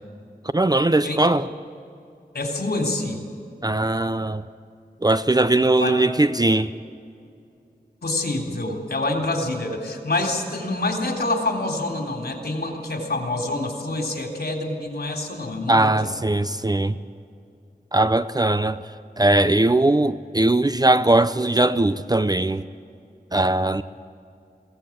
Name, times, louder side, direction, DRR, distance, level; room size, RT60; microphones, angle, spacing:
voice 1, 0.5-1.5 3.6-4.4 5.0-6.7 15.7-17.0 17.9-18.8 19.2-22.6 23.3-23.8, right 2 dB, 25° right, 0.6 m, -20 dB
voice 2, 2.3-3.2 5.8-6.1 8.0-15.9, left 2 dB, 70° left, 3.5 m, -26 dB
22.5 x 17.5 x 8.7 m
wide cardioid pair, 65°, 17 cm